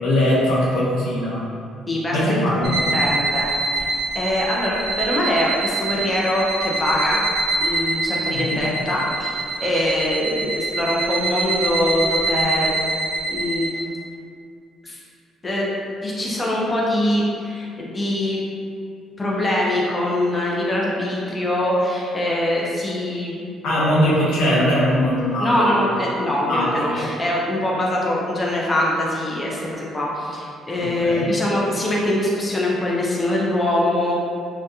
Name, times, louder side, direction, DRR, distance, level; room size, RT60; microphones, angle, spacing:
voice 1, 0.0-1.4 2.1-2.8 8.3-8.6 23.6-25.8 26.5-27.1 30.8-31.3, left 1 dB, 90° left, -7 dB, 0.6 m, -20 dB
voice 2, 1.9-2.2 2.5-2.7 2.9-3.5 3.8-3.9 4.1-7.2 7.6-9.3 9.6-12.7 13.3-13.7 14.8-15.0 15.4-18.4 19.2-23.5 25.4-34.1, left 1 dB, 20° left, -4 dB, 0.4 m, -23 dB
sound 1, 2.6-13.7, right 2 dB, 65° right, 0.7 m, -25 dB
2.7 x 2.1 x 2.2 m, 2.3 s
cardioid pair, 105°, 0 cm